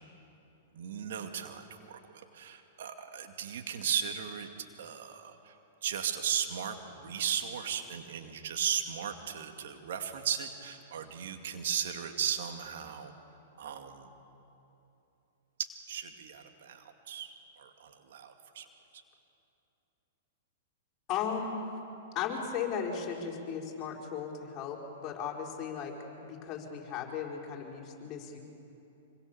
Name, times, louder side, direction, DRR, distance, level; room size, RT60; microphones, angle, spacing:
voice 1, 0.7-4.5 4.8-5.5 5.8-13.1 13.6-14.1 15.9-18.7, right 8 dB, 65° right, 5 dB, 2.3 m, -36 dB
voice 2, 21.1-21.6 22.1-25.9 26.3-28.4, left 7 dB, 35° left, 0 dB, 4.7 m, -36 dB
26.0 x 24.0 x 6.9 m, 2.9 s
hypercardioid pair, 110°, 0 cm